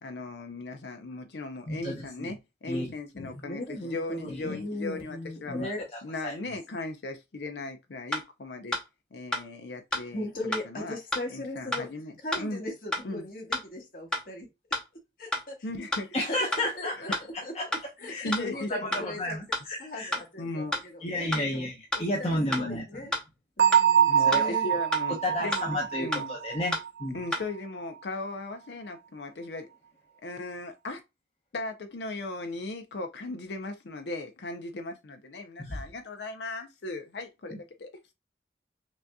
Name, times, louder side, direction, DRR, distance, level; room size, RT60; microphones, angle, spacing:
voice 1, 0.0-5.7 6.0-8.8 9.1-11.0 11.3-12.6 13.0-13.3 15.6-16.3 16.9-17.2 18.1-18.7 20.0-20.1 20.4-20.8 24.1-26.4 27.1-29.7 30.2-31.0 31.5-37.9, left 2 dB, 80° left, 0.6 m, -37 dB
voice 2, 1.7-2.3 2.7-2.9 3.3-3.4 4.3-4.5 5.5-5.7 6.2-6.3 16.1-17.2 17.5-17.7 18.1-18.2 18.7-19.4 19.7-20.1 21.0-21.7 22.0-22.8 24.2-24.5 25.2-27.2 35.6-35.8, left 1 dB, 35° left, 0.9 m, -31 dB
voice 3, 3.1-5.8 10.1-11.9 12.2-14.5 15.2-15.5 16.3-17.6 18.0-19.4 19.8-21.7 21.9-23.1 23.6-24.7, left 1 dB, 50° left, 1.4 m, -38 dB
sound 1, 8.1-8.2 8.7-8.8 9.3-9.4 9.9-10.0 10.5-10.6 11.1-11.2 11.7-11.8 12.3-12.4 12.9-13.0 13.5-13.6 14.1-14.2 14.7-14.8 15.3-15.4 15.9-16.0 16.5-16.6 17.1-17.2 17.7-17.8 18.3-18.4 18.9-19.0 19.5-19.6 20.1-20.2 20.7-20.8 21.3-21.4 21.9-22.0 22.5-22.6 23.1-23.2 23.7-23.8 24.3-24.4 24.9-25.0 25.5-25.6 26.1-26.2 26.7-26.8 27.3-27.4, left 1 dB, 5° left, 0.8 m, -30 dB
Bell, 23.6-27.3, right 9 dB, 70° right, 0.8 m, -25 dB
6.0 x 2.7 x 2.3 m
head